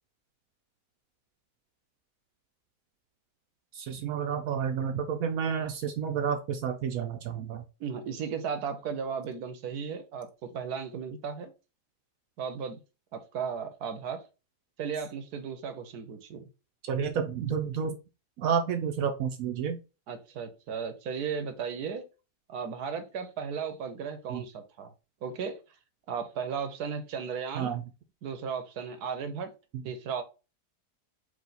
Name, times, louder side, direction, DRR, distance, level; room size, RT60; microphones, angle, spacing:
voice 1, 3.7-7.6 16.8-18.0 18.4-19.8 24.3-24.4 27.5-27.8 29.7-29.8, right 7 dB, 70° right, 6 dB, 1.0 m, -30 dB
voice 2, 7.8-10.3 10.5-11.5 12.4-12.8 13.1-14.3 14.8-16.5 20.1-22.0 22.5-24.9 25.2-25.6 26.1-27.8 28.2-29.5 29.8-30.2, right 6 dB, 85° right, 7 dB, 1.4 m, -35 dB
4.8 x 2.7 x 4.0 m, 0.29 s
omnidirectional pair, 1.6 m